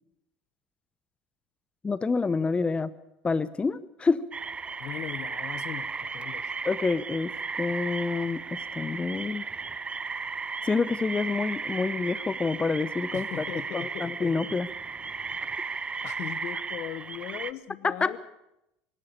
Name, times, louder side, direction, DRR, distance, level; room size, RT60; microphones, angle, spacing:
voice 1, 1.8-2.9 3.2-4.3 6.6-9.4 10.6-13.3 13.7-14.7 17.8-18.2, left 4 dB, 20° left, 17 dB, 0.8 m, -27 dB
sound 1, 4.3-17.5, right 4 dB, 25° right, 0.8 m, -35 dB
voice 2, 4.8-6.5 13.1-14.6 16.0-18.2, left 13 dB, 60° left, 17 dB, 1.0 m, -39 dB
25.0 x 12.0 x 8.6 m, 0.88 s
hypercardioid pair, 80°, 5 cm